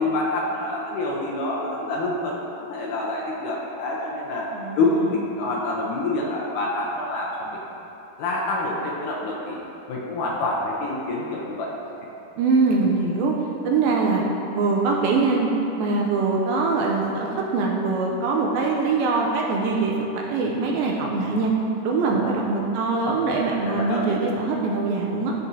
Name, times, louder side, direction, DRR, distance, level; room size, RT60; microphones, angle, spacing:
voice 1, 0.0-2.4 2.7-4.5 4.8-7.6 8.2-9.6 9.9-11.7 22.1-22.3 23.7-24.2, left 2 dB, 80° left, -3 dB, 1.8 m, -26 dB
voice 2, 4.5-5.1 12.4-13.3 13.6-14.2 14.5-15.5 15.8-21.5 21.8-25.3, right 4 dB, 80° right, -1 dB, 2.2 m, -23 dB
12.0 x 6.0 x 2.7 m, 3.0 s
omnidirectional pair, 4.7 m